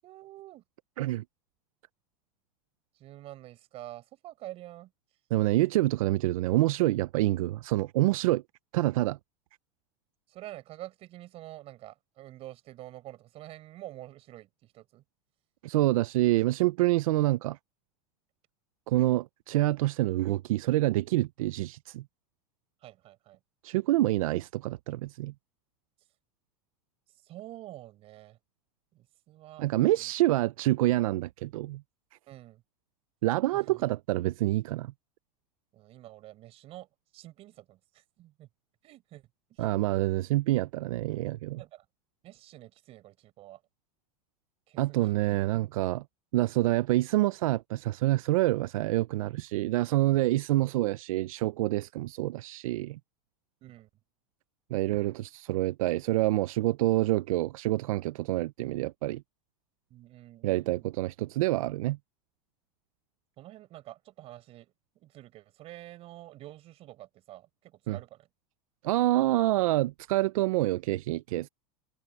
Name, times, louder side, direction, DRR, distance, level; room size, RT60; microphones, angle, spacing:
voice 1, 0.0-0.6 3.0-4.9 10.3-15.0 22.8-23.4 27.2-28.4 28.9-30.1 32.3-32.6 33.5-33.8 35.7-36.9 37.1-38.5 38.8-39.7 41.6-41.8 42.2-43.6 44.7-45.1 53.6-53.9 59.9-61.0 63.4-68.3, right 15 dB, 35° right, 6.4 m, -48 dB
voice 2, 5.3-8.4 8.7-9.2 15.6-17.6 18.9-22.0 23.6-25.3 29.6-31.8 33.2-34.9 39.6-41.6 44.8-46.0 46.3-53.0 54.7-59.2 60.4-62.0 67.9-68.0 68.8-71.5, right 16 dB, 80° right, 0.5 m, -27 dB
supercardioid pair, 160°, 17 cm